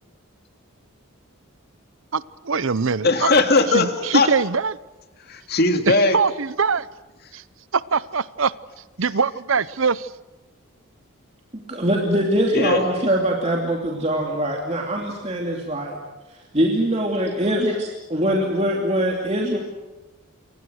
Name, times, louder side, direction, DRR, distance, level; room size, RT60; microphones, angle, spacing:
voice 1, 2.1-3.3 3.7-4.8 5.9-6.9 7.3-7.4 7.7-8.5 9.0-10.1, right 5 dB, 65° right, 18 dB, 0.8 m, -22 dB
voice 2, 3.0-4.3 5.3-6.2 12.5-12.8, left 3 dB, 45° left, 6 dB, 2.5 m, -19 dB
voice 3, 11.5-16.0 16.5-19.6, right 1 dB, 30° right, 0 dB, 2.8 m, -23 dB
28.5 x 25.0 x 6.4 m, 1.1 s
head